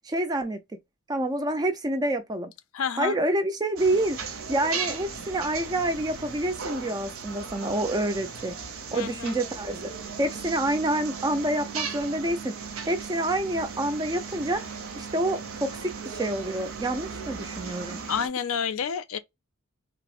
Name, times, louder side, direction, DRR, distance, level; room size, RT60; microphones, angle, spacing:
voice 1, 0.0-0.6 1.1-2.5 3.0-4.2 4.5-8.5 8.9-9.9 10.2-14.6 15.0-18.0, right 1 dB, 20° right, 0.3 m, -27 dB
voice 2, 2.7-3.2 8.9-9.4 18.1-19.2, left 7 dB, 75° left, 0.4 m, -29 dB
sound 1, 3.8-18.3, right 5 dB, 75° right, 0.6 m, -37 dB
3.4 x 2.0 x 2.3 m
head